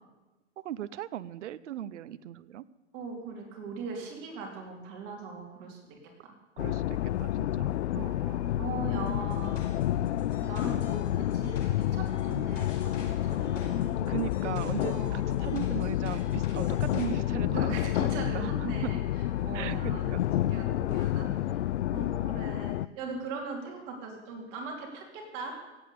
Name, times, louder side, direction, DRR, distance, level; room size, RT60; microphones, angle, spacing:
voice 1, 0.6-2.6 6.6-7.7 14.1-17.9 18.3-18.9 19.5-20.2, right 11 dB, 75° right, 16 dB, 0.7 m, -38 dB
voice 2, 2.9-6.3 7.9-9.6 10.4-14.1 14.8-15.2 16.6-16.7 17.5-19.0 19.4-20.1 20.4-21.6 21.9-25.5, right 4 dB, 45° right, 1 dB, 4.1 m, -40 dB
sound 1, 6.6-22.9, left 13 dB, 65° left, 0.6 m, -29 dB
sound 2, 9.1-17.1, left 5 dB, 90° left, 5.8 m, -43 dB
17.0 x 8.9 x 8.6 m, 1.1 s
hypercardioid pair, 130°, 36 cm